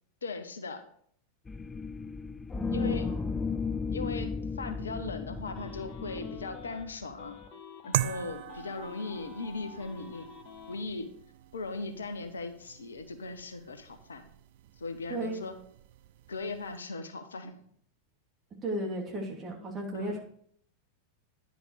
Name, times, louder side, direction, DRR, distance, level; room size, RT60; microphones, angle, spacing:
voice 1, 0.2-0.8 2.7-3.1 3.9-7.4 7.8-10.3 10.7-11.1 11.5-14.3 14.8-15.6 16.3-17.6 19.9-20.2, left 3 dB, 70° left, 8 dB, 1.0 m, -38 dB
sound 1, 1.5-7.5, left 5 dB, 15° left, 0.4 m, -35 dB
voice 2, 2.5-3.3 15.1-15.4 18.6-20.2, right 2 dB, 25° right, -1 dB, 2.8 m, -35 dB
sound 2, 5.4-6.8 7.2-10.8, left 6 dB, 40° left, 1.1 m, -49 dB
sound 3, 7.9-16.8, right 13 dB, 55° right, 0.4 m, -40 dB
10.5 x 5.3 x 5.0 m, 0.63 s
figure-of-eight pair, 90°, 0 cm